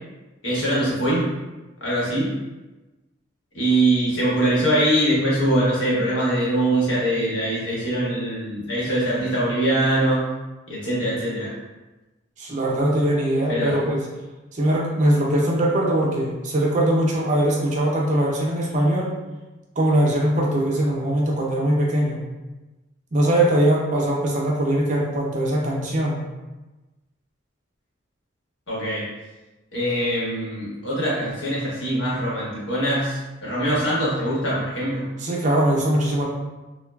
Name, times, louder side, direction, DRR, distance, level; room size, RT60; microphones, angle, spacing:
voice 1, 0.4-1.3 1.8-2.3 3.5-10.3 10.7-11.5 13.5-13.7 28.7-29.1 29.7-35.0, right 1 dB, 75° left, -7 dB, 1.1 m, -22 dB
voice 2, 12.4-14.0 14.5-19.1 19.8-22.2 23.1-26.2 35.2-36.3, right 1 dB, 40° right, -3 dB, 0.5 m, -21 dB
3.0 x 2.2 x 2.3 m, 1.1 s
head